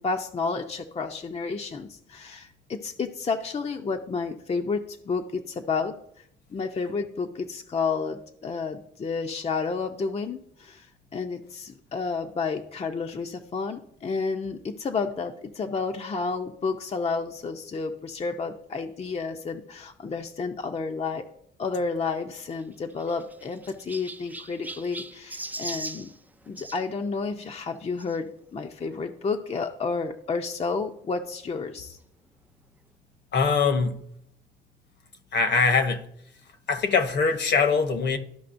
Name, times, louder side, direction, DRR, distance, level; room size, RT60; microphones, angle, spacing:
voice 1, 0.0-6.0 6.5-21.2 21.6-26.1 26.5-32.0, left 4 dB, 30° left, 0.6 m, -31 dB
Chirp tweet, 22.5-26.8 28.0-28.2 28.9-29.0 29.2-29.3 30.5-30.6, right 2 dB, 10° right, 0.4 m, -39 dB
voice 2, 33.3-34.0 35.3-36.1 36.7-38.2, left 5 dB, 60° left, 1.1 m, -22 dB
13.0 x 5.2 x 2.6 m
cardioid pair, 90°, 20 cm